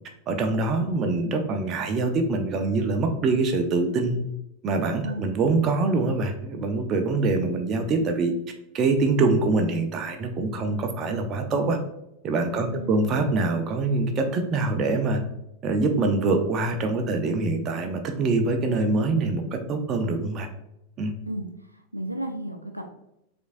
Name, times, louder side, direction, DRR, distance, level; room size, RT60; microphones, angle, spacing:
voice 1, 0.3-4.2 4.6-8.3 8.7-11.8 12.2-15.2 15.6-20.5 21.0-21.1, right 3 dB, 30° right, 5 dB, 0.6 m, -24 dB
voice 2, 12.6-13.2 21.3-21.5 21.9-22.8, right 1 dB, 85° right, 4 dB, 0.4 m, -33 dB
5.0 x 3.6 x 2.5 m, 0.85 s
figure-of-eight pair, 90°, 0 cm